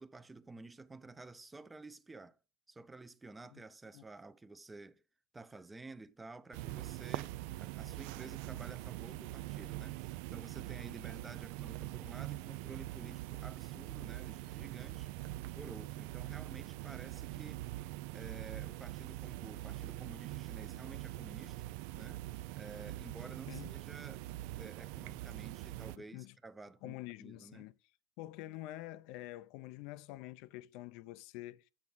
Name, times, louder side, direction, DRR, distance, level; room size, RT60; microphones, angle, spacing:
voice 1, 0.0-2.4 2.7-5.0 5.3-15.1 15.5-17.6 18.1-21.7 21.9-22.3 22.5-24.3 24.6-27.7, right 3 dB, 15° right, 0.6 m, -52 dB
sound 1, 6.5-26.0, right 17 dB, 70° right, 0.3 m, -43 dB
voice 2, 26.0-26.3 26.8-27.7 28.2-31.7, left 16 dB, 65° left, 0.4 m, -47 dB
8.7 x 6.1 x 3.9 m
supercardioid pair, 120°, 0 cm